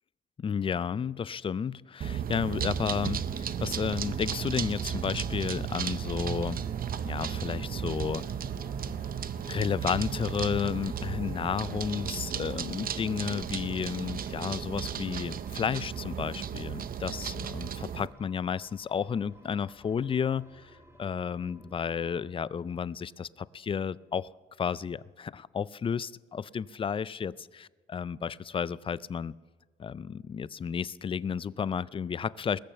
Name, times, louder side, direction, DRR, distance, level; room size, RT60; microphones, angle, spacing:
voice 1, 0.4-6.6 7.0-8.3 9.5-20.7 21.0-24.3 24.6-29.3 29.8-32.6, left 7 dB, 25° left, 21 dB, 0.3 m, -32 dB
sound 1, 2.0-18.1, right 8 dB, 45° right, 0.7 m, -34 dB
sound 2, 3.6-22.3, right 1 dB, 10° right, 2.3 m, -58 dB
20.0 x 7.0 x 6.8 m, 1.4 s
cardioid pair, 90°, 20 cm